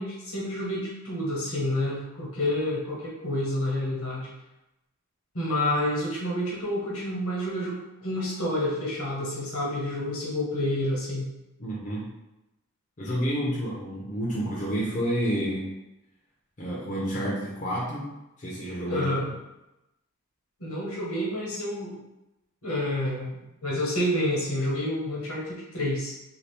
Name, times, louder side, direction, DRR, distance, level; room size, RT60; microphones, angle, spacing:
voice 1, 0.0-4.3 5.3-11.3 18.9-19.2 20.6-22.0 22.6-26.1, left 1 dB, 85° left, -5 dB, 1.2 m, -29 dB
voice 2, 11.6-12.1 13.0-15.7 16.6-18.1 18.4-19.0, equal, 35° left, -5 dB, 0.6 m, -29 dB
2.8 x 2.5 x 3.3 m, 0.93 s
head